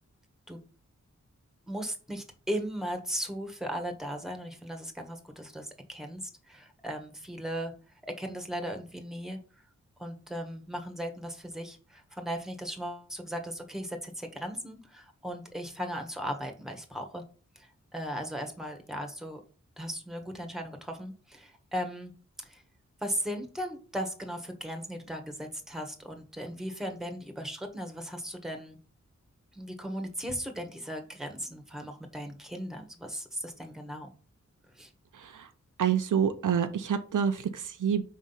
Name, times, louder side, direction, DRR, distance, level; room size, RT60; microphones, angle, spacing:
voice 1, 1.7-7.7 8.0-9.4 10.0-17.2 17.5-19.4 19.8-22.1 22.4-22.6 23.0-28.8 29.5-34.1 34.7-34.9, equal, ahead, 4 dB, 1.5 m, -37 dB
voice 2, 35.2-35.5 35.8-38.0, right 8 dB, 85° right, 9 dB, 0.7 m, -27 dB
5.2 x 3.7 x 5.7 m, 0.38 s
cardioid pair, 60°, 30 cm